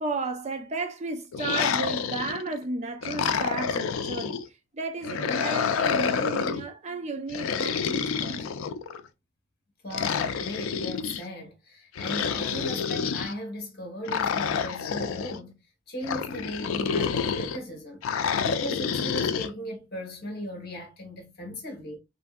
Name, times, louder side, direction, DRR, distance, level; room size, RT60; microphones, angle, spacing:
voice 1, 0.0-4.4 4.7-8.5, right 3 dB, 35° right, 0.5 m, -33 dB
sound 1, 1.3-2.5 3.0-4.4 5.0-6.7 7.3-9.0 9.9-11.2 12.0-13.3 14.1-15.4 16.0-17.6 18.0-19.5, left 6 dB, 90° left, 0.4 m, -28 dB
voice 2, 9.8-15.6 15.9-18.0 18.4-22.0, equal, 50° left, 1.1 m, -37 dB
3.2 x 2.6 x 2.2 m
head